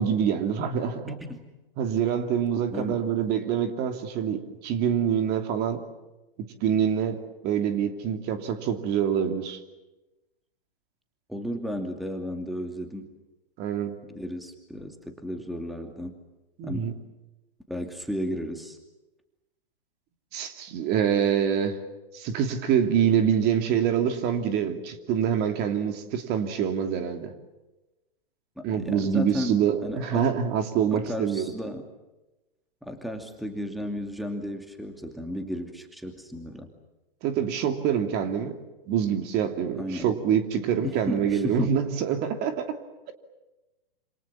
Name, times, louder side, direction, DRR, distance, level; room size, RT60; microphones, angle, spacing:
voice 1, 0.0-1.2 1.8-5.8 6.6-9.6 13.6-13.9 16.6-16.9 20.3-21.8 22.1-27.3 28.6-31.5 37.2-38.6 38.9-42.8, right 8 dB, 35° right, 7 dB, 2.9 m, -25 dB
voice 2, 1.1-1.4 2.7-3.0 11.3-13.1 14.1-16.2 16.6-16.9 17.7-18.8 28.6-30.3 30.9-31.9 32.8-36.7 39.7-40.1 40.8-41.8, equal, ahead, 6 dB, 2.6 m, -34 dB
28.0 x 27.0 x 7.3 m, 1.0 s
hypercardioid pair, 120°, 29 cm